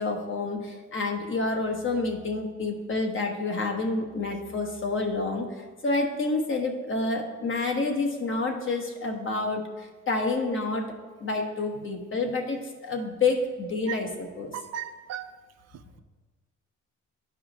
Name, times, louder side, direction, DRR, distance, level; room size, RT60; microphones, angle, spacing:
voice 1, 0.0-5.5 5.8-10.8 11.2-14.5, left 3 dB, 40° left, 2 dB, 1.2 m, -28 dB
voice 2, 14.5-15.3 15.7-16.0, right 10 dB, 60° right, 11 dB, 0.4 m, -37 dB
11.5 x 4.9 x 3.0 m, 1.3 s
cardioid pair, 90°, 30 cm